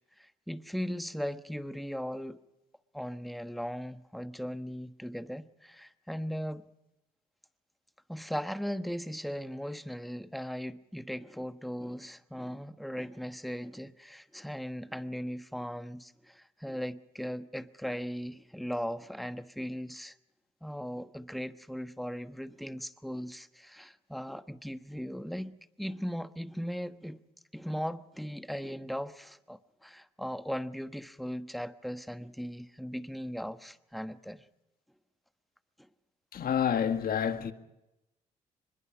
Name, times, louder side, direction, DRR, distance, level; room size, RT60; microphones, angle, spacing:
voice 1, 0.2-2.4 2.9-6.7 8.1-20.2 20.6-27.2 27.5-34.5, equal, ahead, 1.2 m, -38 dB
voice 2, 36.3-37.5, left 8 dB, 55° left, 1.8 m, -28 dB
24.0 x 21.5 x 5.2 m
supercardioid pair, 60°, 18 cm